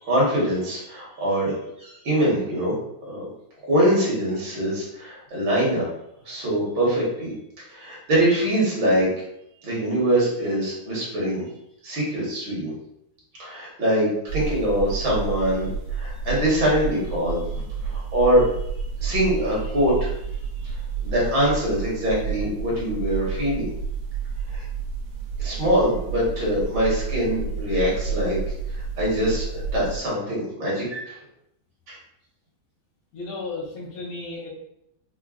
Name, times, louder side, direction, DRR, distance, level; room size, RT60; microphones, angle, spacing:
voice 1, 0.0-1.5 1.8-2.7 3.1-3.3 3.7-5.9 6.3-7.3 7.6-9.1 9.6-11.4 11.8-12.7 13.4-17.4 17.8-18.5 19.0-20.2 20.6-20.7 21.0-23.7 24.5-24.6 25.4-28.4 28.7-31.2 31.9-32.0, equal, 65° right, -6 dB, 2.0 m, -23 dB
sound 1, 14.3-30.0, right 5 dB, 85° right, 1.6 m, -30 dB
voice 2, 33.1-34.5, left 3 dB, 90° left, -6 dB, 2.0 m, -34 dB
5.2 x 2.1 x 2.4 m, 0.79 s
omnidirectional pair, 2.3 m